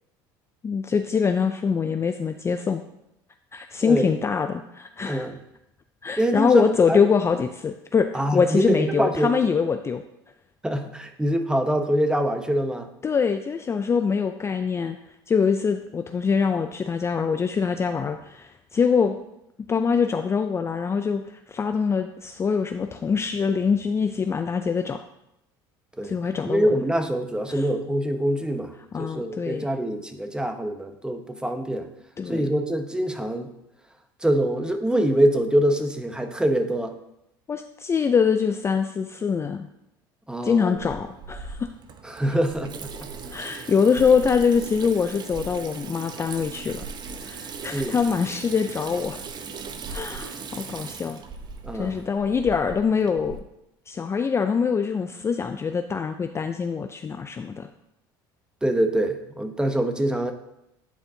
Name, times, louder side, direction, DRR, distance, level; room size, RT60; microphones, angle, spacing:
voice 1, 0.6-2.8 3.5-5.3 6.0-10.0 13.0-15.0 15.3-19.2 19.7-25.0 26.0-26.8 27.5-27.7 28.9-29.7 32.2-32.4 37.5-39.7 40.4-41.6 43.3-46.8 47.2-49.2 49.9-51.2 51.8-53.4 53.9-57.7, left 6 dB, 25° left, 7 dB, 0.4 m, -24 dB
voice 2, 3.8-4.1 5.1-5.4 6.2-7.1 8.1-9.3 10.6-12.9 26.0-26.1 26.4-31.9 32.3-33.5 34.2-36.9 40.3-40.8 42.0-42.9 47.7-48.0 51.6-52.0 58.6-60.3, right 1 dB, 5° right, 7 dB, 0.8 m, -24 dB
Water tap faucet / Sink (filling or washing), 40.8-53.4, right 5 dB, 40° right, 0.7 m, -38 dB
10.0 x 4.3 x 2.7 m, 0.82 s
hypercardioid pair, 80°, 11 cm